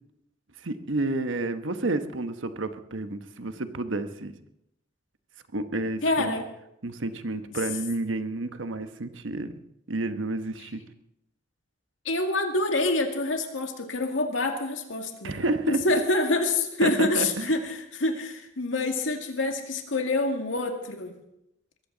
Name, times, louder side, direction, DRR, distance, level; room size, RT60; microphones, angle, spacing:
voice 1, 0.6-4.3 5.5-6.3 6.8-9.5 9.9-10.8 15.2-16.0 16.8-17.5, right 2 dB, 85° right, 9 dB, 1.1 m, -30 dB
voice 2, 6.0-6.4 12.1-21.1, left 2 dB, 85° left, 4 dB, 2.1 m, -27 dB
22.0 x 14.5 x 4.0 m, 0.81 s
head